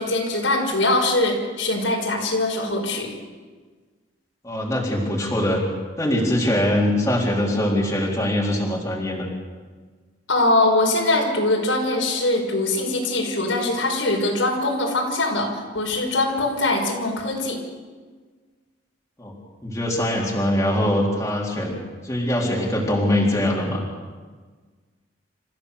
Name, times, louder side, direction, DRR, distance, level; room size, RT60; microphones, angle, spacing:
voice 1, 0.0-3.1 10.3-17.6, left 2 dB, 90° left, 0 dB, 5.5 m, -22 dB
voice 2, 4.4-5.6 6.0-9.3 19.2-19.3 19.6-21.8 22.0-23.8, left 1 dB, 15° left, -3 dB, 3.8 m, -22 dB
27.5 x 15.0 x 6.9 m, 1.4 s
head